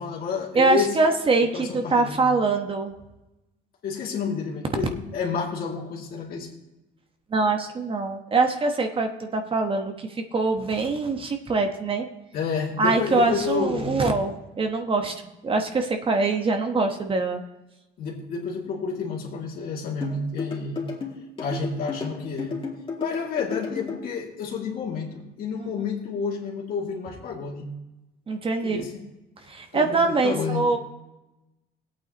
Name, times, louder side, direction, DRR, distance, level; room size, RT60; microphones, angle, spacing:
voice 1, 0.0-1.0 1.5-2.2 3.8-6.5 12.3-14.0 18.0-20.8 21.4-22.5 23.0-27.7 28.6-29.0 29.7-30.7, left 5 dB, 60° left, -1 dB, 2.5 m, -30 dB
voice 2, 0.5-2.9 7.3-12.1 12.8-17.4 25.6-25.7 28.3-28.9 29.5-30.8, right 3 dB, 30° right, 5 dB, 1.1 m, -24 dB
sound 1, 20.0-24.0, left 5 dB, 30° left, 2.3 m, -32 dB
17.5 x 8.6 x 3.0 m, 1.0 s
cardioid pair, 110°, 17 cm